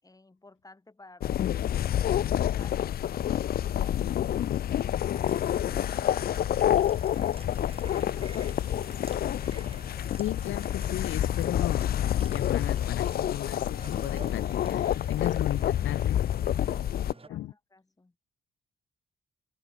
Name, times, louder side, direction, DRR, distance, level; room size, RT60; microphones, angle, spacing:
voice 1, 0.0-6.9 16.6-18.2, left 2 dB, 15° left, 7.5 m, -56 dB
sound 1, 1.2-17.1, left 11 dB, 50° left, 0.5 m, -28 dB
sound 2, 5.1-17.3, right 4 dB, 30° right, 6.0 m, -50 dB
voice 2, 10.2-11.9 12.2-16.2 17.3-17.5, left 13 dB, 75° left, 1.3 m, -35 dB
open air
cardioid pair, 90°, 20 cm